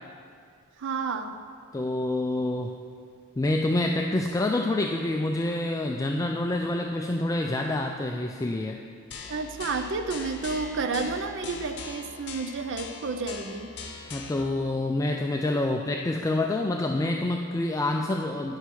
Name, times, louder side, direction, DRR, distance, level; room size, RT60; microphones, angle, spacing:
voice 1, 0.8-1.4 9.3-13.7, right 4 dB, 60° right, 8 dB, 0.5 m, -31 dB
voice 2, 1.7-2.8 3.4-8.8 14.1-18.6, left 2 dB, 15° left, 2 dB, 0.3 m, -27 dB
sound 1, 9.1-14.4, left 5 dB, 55° left, 0.9 m, -41 dB
10.0 x 5.7 x 6.0 m, 2.3 s
head